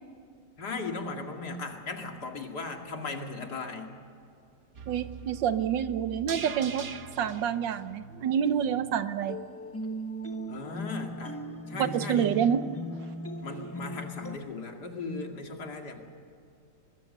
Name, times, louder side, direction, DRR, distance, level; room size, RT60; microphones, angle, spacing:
voice 1, 0.6-3.9 10.5-11.4 11.7-12.3 13.4-16.0, left 3 dB, 65° left, 3 dB, 2.9 m, -37 dB
sound 1, 4.7-9.0 9.3-9.4, right 6 dB, 45° right, 1.3 m, -43 dB
voice 2, 4.9-6.9 7.2-9.4 11.8-12.7, right 8 dB, 90° right, 12 dB, 1.6 m, -27 dB
sound 2, 9.3-14.4, equal, 10° left, 0.9 m, -38 dB
22.5 x 22.0 x 6.7 m, 2.5 s
omnidirectional pair, 1.9 m